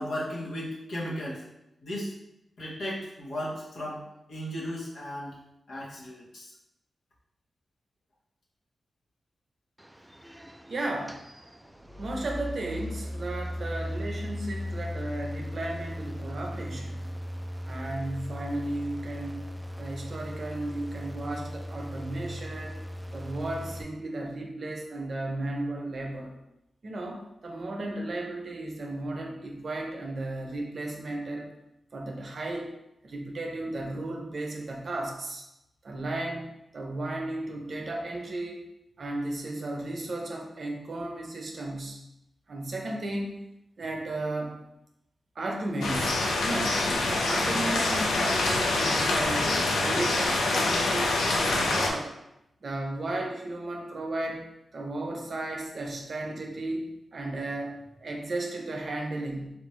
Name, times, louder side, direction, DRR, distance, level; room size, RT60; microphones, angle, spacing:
voice 1, 0.0-1.4 1.8-2.1 2.6-4.0 4.3-5.3 5.7-6.5, equal, 70° left, -5 dB, 1.1 m, -35 dB
sound 1, 9.8-23.8, left 1 dB, 10° right, 0.3 m, -38 dB
voice 2, 10.7-11.2 12.0-17.0 17.7-19.4 19.8-22.8 23.1-26.3 26.8-31.5 31.9-32.7 33.0-35.5 35.8-38.6 39.0-42.0 42.5-43.4 43.8-44.6 45.4-52.1 52.6-54.4 54.7-56.9 57.1-59.5, right 2 dB, 60° right, 1 dB, 0.6 m, -34 dB
sound 2, 45.8-51.9, left 2 dB, 85° left, 0.4 m, -26 dB
3.4 x 2.6 x 3.1 m, 0.87 s
supercardioid pair, 40°, 0 cm